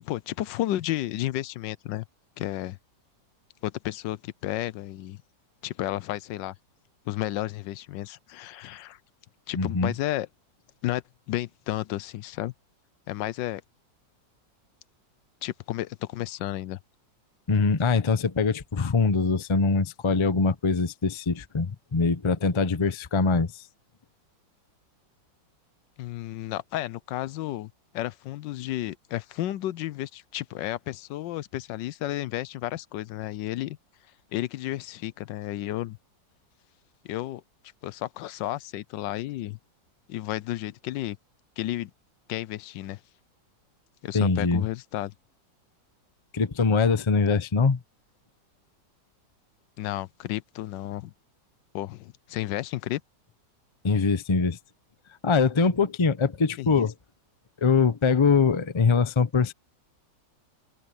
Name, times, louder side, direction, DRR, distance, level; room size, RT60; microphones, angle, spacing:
voice 1, 0.0-2.0 2.4-2.8 3.6-5.2 5.6-6.5 7.1-9.0 9.5-10.3 10.8-12.5 13.1-13.6 15.4-16.8 26.0-33.8 34.3-36.0 37.0-37.4 37.8-39.6 40.1-41.2 41.6-41.9 42.3-43.0 44.0-45.1 49.8-51.1 51.7-53.0 56.6-56.9, left 14 dB, 80° left, 1.3 m, -32 dB
voice 2, 9.5-9.9 17.5-23.6 44.1-44.6 46.3-47.8 53.8-54.6 55.2-56.9 57.6-59.5, left 4 dB, 35° left, 0.4 m, -23 dB
omnidirectional pair, 2.0 m